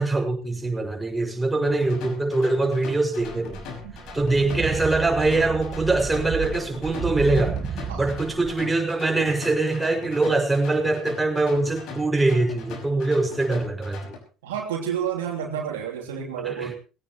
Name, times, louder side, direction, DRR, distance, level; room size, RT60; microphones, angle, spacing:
voice 1, 0.0-3.6 4.1-14.1 16.4-16.7, right 2 dB, 10° right, 1 dB, 6.1 m, -23 dB
sound 1, 1.7-14.2, left 5 dB, 60° left, 5.6 m, -41 dB
sound 2, 3.2-8.6, right 7 dB, 40° right, 1.6 m, -32 dB
voice 2, 14.4-16.7, right 8 dB, 75° right, 1 dB, 3.0 m, -30 dB
21.0 x 17.0 x 3.1 m, 0.35 s
figure-of-eight pair, 60°, 0 cm